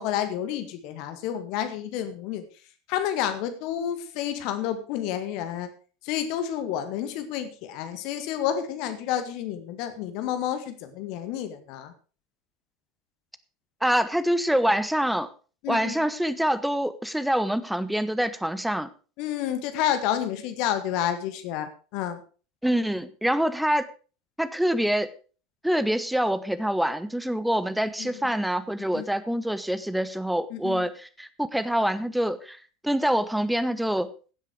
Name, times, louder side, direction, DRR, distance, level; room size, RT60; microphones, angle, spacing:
voice 1, 0.0-2.4 2.9-5.7 6.0-11.9 15.6-16.0 19.2-22.2 28.0-28.4 28.9-29.1 30.5-30.9, left 10 dB, 50° left, 9 dB, 1.8 m, -30 dB
voice 2, 13.8-15.3 15.7-18.9 22.6-23.9 24.4-25.1 25.6-34.1, equal, 5° right, 14 dB, 1.0 m, -25 dB
16.0 x 8.1 x 4.8 m, 0.37 s
figure-of-eight pair, 75°, 0 cm